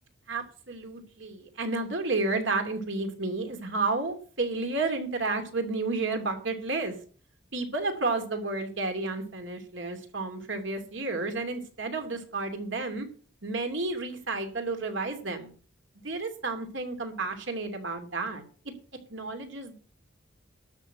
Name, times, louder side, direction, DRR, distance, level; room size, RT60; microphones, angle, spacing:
voice 1, 0.3-6.9 7.5-13.1 13.4-15.5 16.0-18.4 19.1-19.7, right 3 dB, 70° right, 5 dB, 2.8 m, -31 dB
12.5 x 6.2 x 8.0 m, 0.42 s
head